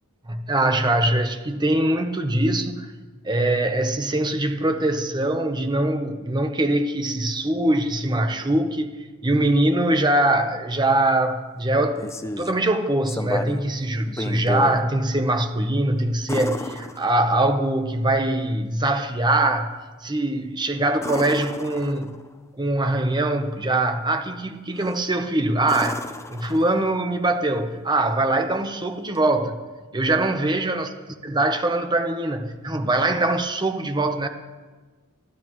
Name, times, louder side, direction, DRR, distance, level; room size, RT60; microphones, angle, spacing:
voice 1, 0.3-2.9 3.2-9.0 9.2-12.1 12.4-22.1 22.6-26.0 26.3-29.6 29.9-30.9 31.2-34.3, right 1 dB, 20° right, 0.9 m, -22 dB
sound 1, 11.7-12.6 13.1-13.7 14.1-14.8 16.3-17.5 21.0-22.3 24.8-25.1 25.6-27.0 29.2-29.3, left 1 dB, 15° left, 0.6 m, -33 dB
25.5 x 14.0 x 3.2 m
head